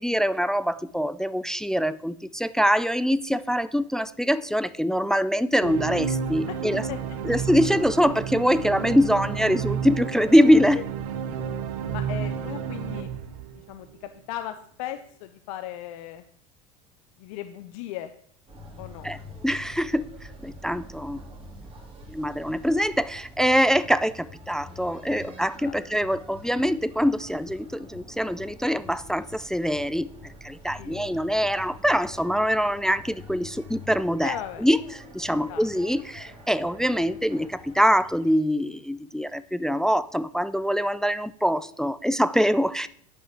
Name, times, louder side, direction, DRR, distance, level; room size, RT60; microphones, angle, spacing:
voice 1, 0.0-6.9 7.2-10.8 19.0-19.2 19.4-20.1 20.4-21.2 22.1-30.1 30.4-34.8 35.2-42.9, equal, 5° left, 15 dB, 0.3 m, -24 dB
sound 1, 5.6-14.1, right 7 dB, 80° right, 1.0 m, -31 dB
voice 2, 6.5-7.0 10.7-10.8 11.4-11.5 11.9-13.1 13.5-16.2 17.2-18.1 18.8-19.1 25.6-25.8 30.8-31.1 34.2-34.7 35.3-35.6, left 12 dB, 75° left, 9 dB, 0.7 m, -37 dB
sound 2, 18.5-38.3, left 1 dB, 30° right, 2.7 m, -46 dB
9.5 x 5.5 x 6.0 m, 0.62 s
supercardioid pair, 105°, 17 cm